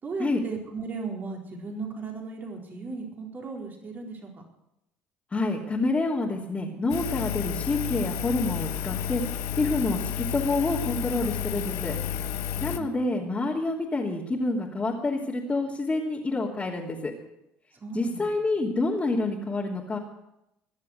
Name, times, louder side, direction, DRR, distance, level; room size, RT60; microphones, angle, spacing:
voice 1, 0.0-4.3 12.6-13.2 17.8-18.3, right 4 dB, 40° right, 0 dB, 4.1 m, -36 dB
voice 2, 5.3-9.2 9.6-11.9 12.6-17.1 17.9-20.0, left 2 dB, 25° left, -5 dB, 2.8 m, -28 dB
Engine, 6.9-12.8, left 9 dB, 75° left, 1.1 m, -31 dB
21.0 x 7.5 x 8.0 m, 0.85 s
hypercardioid pair, 70°, 5 cm